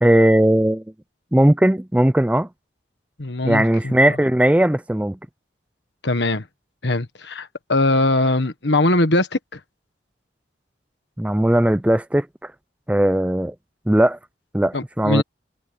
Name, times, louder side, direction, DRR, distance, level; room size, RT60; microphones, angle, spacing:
voice 1, 0.0-0.8 1.3-2.5 3.4-5.2 11.2-12.3 12.9-13.5 13.9-14.2 14.5-15.2, right 1 dB, 5° right, 0.4 m, -17 dB
voice 2, 3.2-4.2 6.0-6.4 6.8-9.6 14.7-15.2, left 2 dB, 70° left, 1.5 m, -21 dB
head